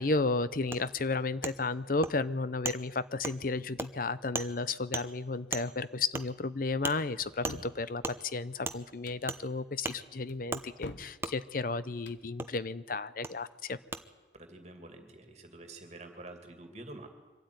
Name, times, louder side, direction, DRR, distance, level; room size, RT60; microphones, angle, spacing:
voice 1, 0.0-13.8, left 3 dB, 50° left, 15 dB, 0.7 m, -33 dB
Wood, 0.7-0.8 1.4-1.5 2.0-2.1 2.6-2.8 3.2-3.4 3.8-3.9 4.3-4.5 4.9-5.0 5.5-5.6 6.1-6.3 6.8-7.0 7.4-7.6 8.0-8.2 8.6-8.8 9.3-9.4 9.8-10.0 10.5-10.6 11.2-11.3 12.4-12.5 13.2-13.3 13.9-14.0, right 3 dB, 15° right, 0.8 m, -35 dB
sound 1, 7.2-7.8 8.9-9.3 10.3-11.1 11.9-12.2, left 2 dB, 85° left, 1.2 m, -45 dB
voice 2, 14.3-17.1, right 2 dB, 40° right, 5 dB, 2.5 m, -48 dB
24.0 x 13.0 x 9.6 m, 1.3 s
head